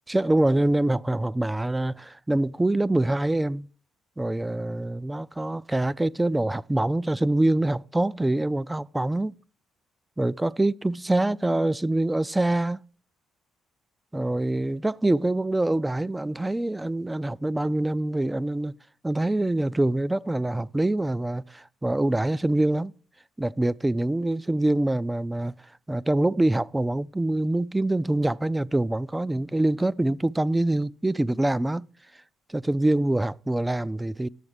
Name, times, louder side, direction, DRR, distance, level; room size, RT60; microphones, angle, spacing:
voice 1, 0.1-3.7 4.2-9.4 10.2-12.8 14.1-18.8 19.0-22.9 23.4-25.5 25.9-31.9 32.5-34.3, right 1 dB, 15° right, 0.4 m, -25 dB
11.0 x 7.0 x 4.9 m
hypercardioid pair, 50°, 0 cm